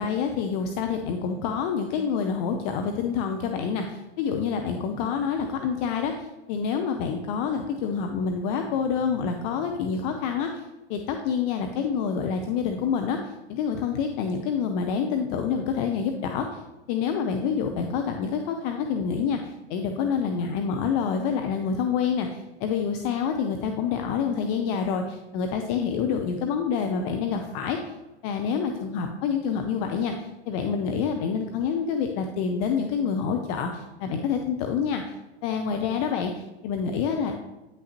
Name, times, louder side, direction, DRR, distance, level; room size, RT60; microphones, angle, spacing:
voice 1, 0.0-10.6 10.9-16.6 16.9-27.9 28.2-35.1 35.4-37.5, left 6 dB, 35° left, 4 dB, 0.6 m, -27 dB
9.2 x 5.9 x 2.9 m, 1.0 s
figure-of-eight pair, 100°, 33 cm